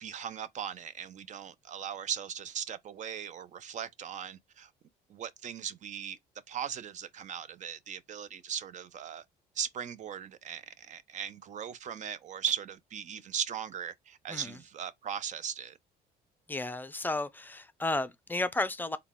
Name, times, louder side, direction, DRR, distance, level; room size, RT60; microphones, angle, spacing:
voice 1, 0.0-4.7 5.1-6.2 6.5-9.2 9.5-15.8, right 8 dB, 45° right, 0.5 m, -38 dB
voice 2, 16.5-19.0, left 2 dB, 10° left, 0.5 m, -33 dB
3.9 x 2.2 x 3.5 m
cardioid pair, 110°, 17 cm